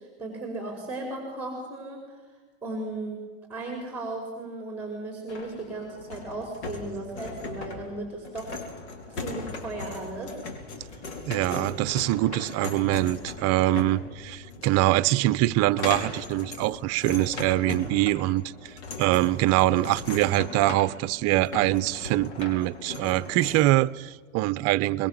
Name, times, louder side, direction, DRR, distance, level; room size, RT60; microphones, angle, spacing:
voice 1, 0.0-2.2 2.6-3.2 3.5-8.7 9.1-10.4, right 2 dB, 5° right, 1 dB, 5.2 m, -36 dB
sound 1, 5.3-23.7, left 4 dB, 70° left, 5.1 m, -39 dB
voice 2, 11.3-18.4 19.0-25.1, right 16 dB, 45° right, 16 dB, 0.8 m, -24 dB
24.0 x 22.0 x 7.5 m, 1.4 s
supercardioid pair, 135°, 34 cm